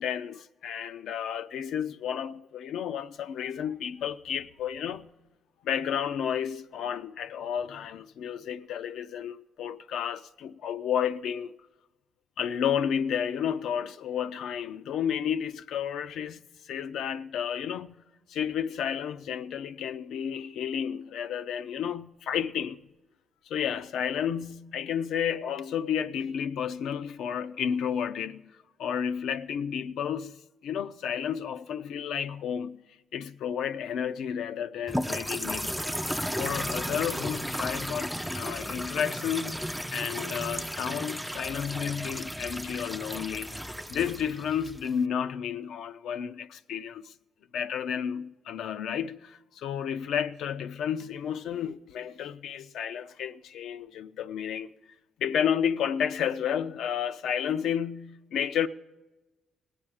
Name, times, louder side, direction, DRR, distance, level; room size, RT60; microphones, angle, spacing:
voice 1, 0.0-5.1 5.6-11.6 12.4-18.0 18.3-22.8 23.5-28.5 28.8-32.8 33.1-35.8 36.4-39.6 39.9-47.1 47.5-54.7 55.2-58.7, left 8 dB, 75° left, 0.5 m, -31 dB
sound 1, 34.9-45.0, equal, ahead, 0.3 m, -34 dB
18.5 x 8.8 x 4.8 m
cardioid pair, 90°, 0 cm